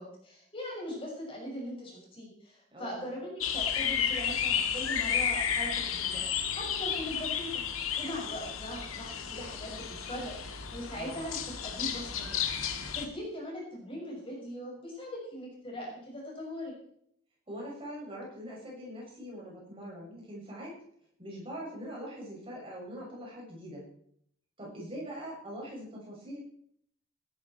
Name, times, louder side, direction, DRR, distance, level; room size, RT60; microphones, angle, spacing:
voice 1, 0.0-7.6 8.0-16.7, equal, 25° left, -2 dB, 6.3 m, -40 dB
voice 2, 2.7-3.1 10.9-11.2 17.5-20.8 21.2-23.8 24.6-26.4, equal, 25° right, -4 dB, 6.6 m, -42 dB
sound 1, 3.4-13.1, left 8 dB, 85° left, 1.9 m, -32 dB
17.5 x 12.5 x 4.5 m, 0.67 s
head